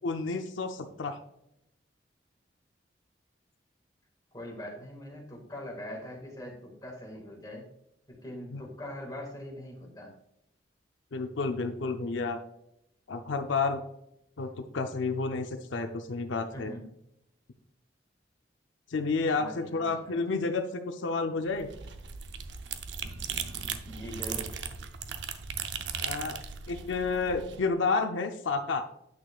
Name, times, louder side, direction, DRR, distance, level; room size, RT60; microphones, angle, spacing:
voice 1, 0.0-1.2 8.5-8.6 11.1-12.4 13.1-13.8 14.4-16.7 18.9-21.7 26.0-26.4 26.7-28.8, left 4 dB, 90° left, 7 dB, 0.6 m, -30 dB
voice 2, 4.3-7.7 8.1-10.1 16.5-16.8 19.4-20.4 23.9-24.6, equal, 20° left, -1 dB, 1.9 m, -42 dB
sound 1, 21.5-27.6, right 7 dB, 75° right, 0.6 m, -37 dB
8.6 x 6.2 x 2.4 m, 0.81 s
head